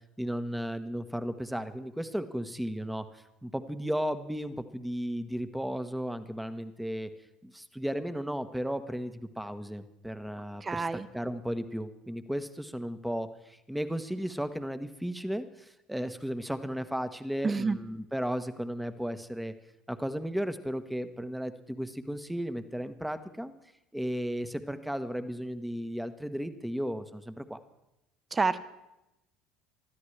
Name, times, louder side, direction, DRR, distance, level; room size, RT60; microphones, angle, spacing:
voice 1, 0.2-7.1 7.4-19.5 19.9-23.5 23.9-27.6, equal, 5° right, 10 dB, 1.2 m, -35 dB
voice 2, 10.6-11.1 17.4-17.8 28.3-28.6, right 4 dB, 25° right, 12 dB, 1.0 m, -28 dB
25.0 x 13.0 x 3.3 m, 0.90 s
hypercardioid pair, 65°, 0 cm